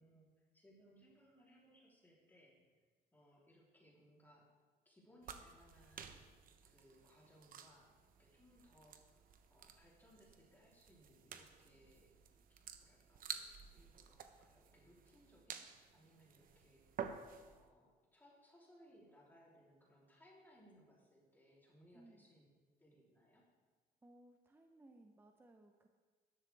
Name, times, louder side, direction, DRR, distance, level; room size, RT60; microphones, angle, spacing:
voice 1, 0.0-2.8 3.1-4.5 4.9-6.3 6.6-7.9 8.2-9.2 9.5-12.1 12.5-16.9 17.4-23.5, equal, 10° left, -5 dB, 3.5 m, -67 dB
sound 1, 5.2-17.6, right 7 dB, 55° right, 1.0 m, -52 dB
voice 2, 21.9-22.3 24.0-25.9, right 1 dB, 15° right, 4 dB, 0.8 m, -63 dB
13.0 x 12.0 x 3.5 m, 1.4 s
cardioid pair, 110°, 17 cm